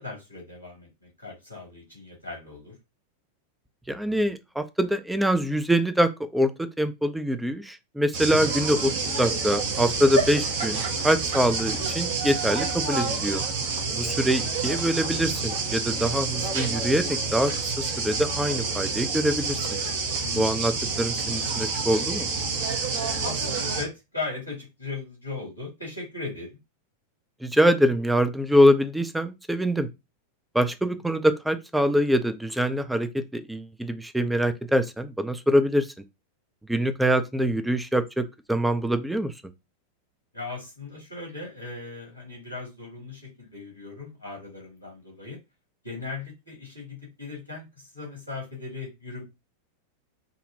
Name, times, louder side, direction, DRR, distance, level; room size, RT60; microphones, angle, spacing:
voice 1, 0.0-2.7 14.0-14.3 20.2-20.7 23.2-26.5 40.3-45.4 45.8-49.2, left 3 dB, 90° left, 2.2 m, -38 dB
voice 2, 3.9-13.4 13.9-19.6 20.4-20.7 21.0-22.3 27.4-29.9 30.5-35.9 36.7-39.3, equal, 5° right, 0.4 m, -24 dB
sound 1, 8.1-23.8, right 4 dB, 55° right, 0.7 m, -28 dB
5.2 x 2.2 x 2.6 m
figure-of-eight pair, 90°, 0 cm